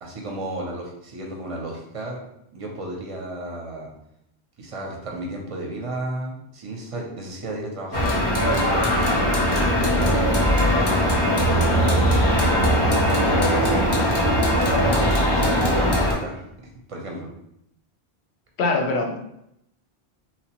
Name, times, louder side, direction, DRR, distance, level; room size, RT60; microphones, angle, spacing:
voice 1, 0.0-2.2 2.5-3.9 4.6-8.0 8.4-8.9 9.4-13.7 14.8-16.5 16.9-17.3, right 1 dB, 40° right, -1 dB, 0.5 m, -34 dB
sound 1, 7.9-16.1, equal, 35° left, 0.4 m, -20 dB
voice 2, 18.6-19.2, left 3 dB, 90° left, 2 dB, 0.8 m, -22 dB
2.9 x 2.0 x 2.8 m, 0.76 s
omnidirectional pair, 1.1 m